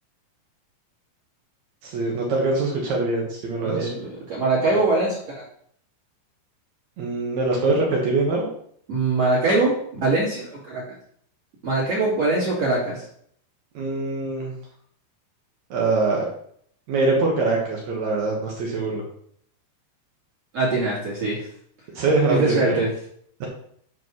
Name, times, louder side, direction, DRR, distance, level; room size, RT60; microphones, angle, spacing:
voice 1, 1.8-3.9 7.0-8.5 13.7-14.5 15.7-16.2 16.9-19.0 21.9-22.8, right 3 dB, 80° right, -2 dB, 1.6 m, -23 dB
voice 2, 3.6-5.4 8.9-10.8 11.6-13.0 20.5-21.4 22.3-22.9, right 2 dB, 40° right, -6 dB, 2.8 m, -22 dB
7.6 x 5.1 x 6.3 m, 0.65 s
omnidirectional pair, 5.5 m